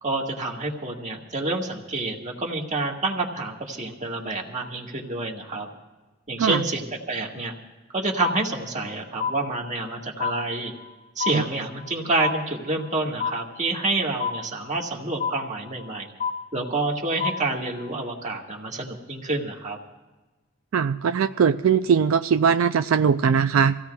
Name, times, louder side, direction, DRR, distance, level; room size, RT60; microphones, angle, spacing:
voice 1, 0.0-5.7 6.3-7.5 7.9-10.7 11.1-16.1 16.5-19.8, right 2 dB, 35° right, 0 dB, 1.7 m, -28 dB
sound 1, 8.2-8.9 9.2-9.9 10.2-10.9 11.2-11.9 12.2-12.9 13.2-13.9 14.2-14.9 15.2-15.9 16.2-16.9 17.2-17.9, left 6 dB, 40° left, 1.1 m, -30 dB
voice 2, 20.7-23.8, right 6 dB, 85° right, 10 dB, 0.4 m, -20 dB
26.5 x 16.0 x 2.3 m, 1.2 s
head